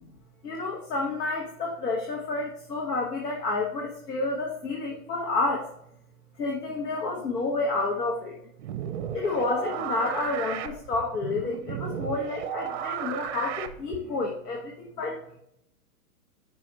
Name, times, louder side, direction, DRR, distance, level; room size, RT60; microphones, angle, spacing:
voice 1, 0.4-5.7 6.4-8.4 9.1-15.2, left 3 dB, 85° left, 0 dB, 1.3 m, -30 dB
sound 1, 8.6-14.1, right 10 dB, 45° right, 0.6 m, -34 dB
5.4 x 4.5 x 4.1 m, 0.75 s
hypercardioid pair, 135°, 46 cm